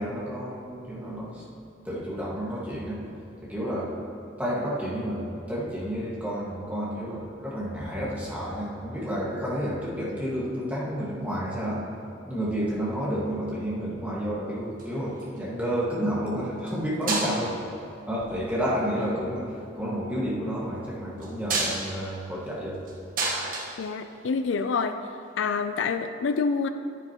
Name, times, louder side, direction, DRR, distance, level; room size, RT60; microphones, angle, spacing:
voice 1, 0.0-1.4 1.8-3.1 3.4-3.9 4.4-11.8 12.3-17.6 18.1-22.8, equal, 10° right, -7 dB, 1.7 m, -30 dB
sound 1, 14.6-15.5 16.6-16.8 17.1-17.7 18.6-19.1 21.2-24.6 25.9-26.0, right 3 dB, 45° right, 1.3 m, -31 dB
voice 2, 23.8-25.0 25.4-26.7, left 5 dB, 70° left, 9 dB, 0.4 m, -27 dB
10.0 x 9.8 x 3.0 m, 2.6 s
head